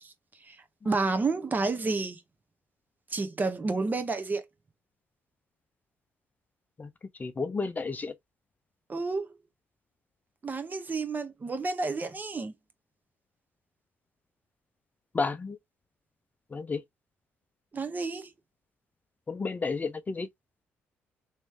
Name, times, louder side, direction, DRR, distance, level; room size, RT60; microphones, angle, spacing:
voice 1, 0.8-2.2 3.1-4.4 8.9-9.3 10.4-12.5 17.7-18.3, right 3 dB, 35° right, 1.0 m, -30 dB
voice 2, 7.2-8.1 15.1-15.6 16.5-16.8 19.3-20.3, left 4 dB, 30° left, 0.5 m, -31 dB
3.1 x 3.1 x 3.1 m
supercardioid pair, 55°, 6 cm